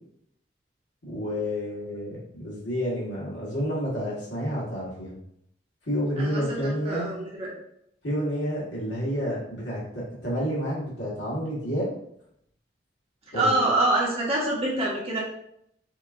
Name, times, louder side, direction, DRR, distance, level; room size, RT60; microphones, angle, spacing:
voice 1, 1.0-5.2 5.8-7.1 8.0-11.9 13.3-13.6, equal, 80° left, -6 dB, 1.6 m, -29 dB
voice 2, 6.2-7.5 13.3-15.2, right 2 dB, 30° right, -4 dB, 1.1 m, -26 dB
6.3 x 2.5 x 2.6 m, 0.73 s
head